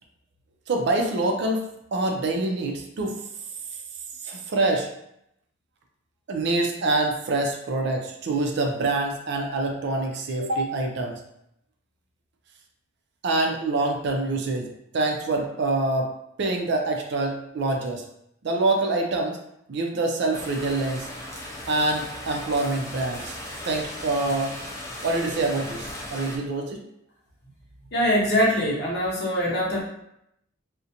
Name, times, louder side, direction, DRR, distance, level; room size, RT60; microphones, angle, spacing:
voice 1, 0.7-1.6 1.9-3.2 4.2-4.9 6.3-11.2 13.2-16.1 16.4-18.0 18.4-19.4 19.7-21.1 21.7-23.4 23.6-24.5 25.0-26.8, right 2 dB, 55° right, 2 dB, 0.4 m, -25 dB
sound 1, 20.3-26.4, left 1 dB, 15° left, 0.4 m, -37 dB
voice 2, 27.9-29.8, equal, 55° left, -4 dB, 0.7 m, -23 dB
2.5 x 2.1 x 2.7 m, 0.78 s
head